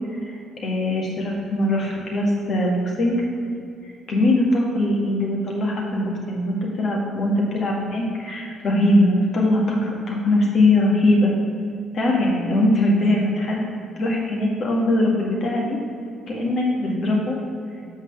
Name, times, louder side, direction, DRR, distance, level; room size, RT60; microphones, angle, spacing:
voice 1, 0.2-3.2 4.1-11.3 11.9-13.6 14.0-15.8 16.3-17.4, left 1 dB, 55° left, -2 dB, 1.9 m, -21 dB
6.2 x 5.5 x 6.0 m, 2.4 s
hypercardioid pair, 50°, 0 cm